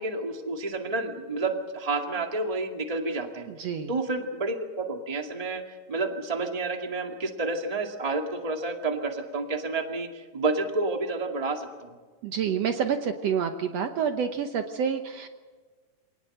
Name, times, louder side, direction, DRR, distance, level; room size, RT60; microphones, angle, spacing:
voice 1, 0.0-3.5 3.9-5.6 5.9-11.9, right 3 dB, 15° right, 4 dB, 1.8 m, -30 dB
voice 2, 3.5-3.9 12.2-15.3, right 7 dB, 65° right, 7 dB, 2.0 m, -28 dB
26.0 x 19.0 x 7.9 m, 1.4 s
omnidirectional pair, 3.5 m